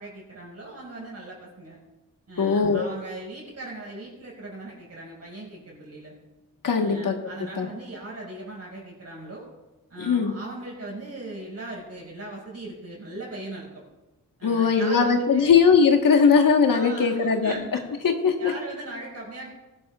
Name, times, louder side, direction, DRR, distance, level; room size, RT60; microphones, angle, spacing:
voice 1, 0.0-1.8 2.3-6.1 6.7-9.5 9.9-13.8 14.4-15.6 16.7-17.9 18.4-19.5, right 2 dB, 45° right, -3 dB, 5.4 m, -39 dB
voice 2, 2.4-2.9 6.6-7.1 7.6-7.7 10.0-10.3 14.4-17.5 18.0-18.5, left 5 dB, 70° left, 3 dB, 1.5 m, -20 dB
21.0 x 12.5 x 2.4 m, 1.1 s
wide cardioid pair, 115°, 34 cm